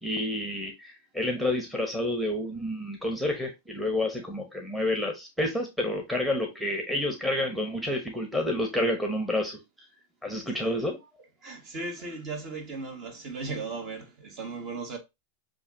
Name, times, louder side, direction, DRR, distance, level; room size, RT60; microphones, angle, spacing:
voice 1, 0.0-9.6 10.2-11.0, left 1 dB, ahead, 1.0 m, -29 dB
voice 2, 11.4-15.0, right 3 dB, 40° right, 1.7 m, -36 dB
6.9 x 2.6 x 2.8 m
hypercardioid pair, 105°, 0 cm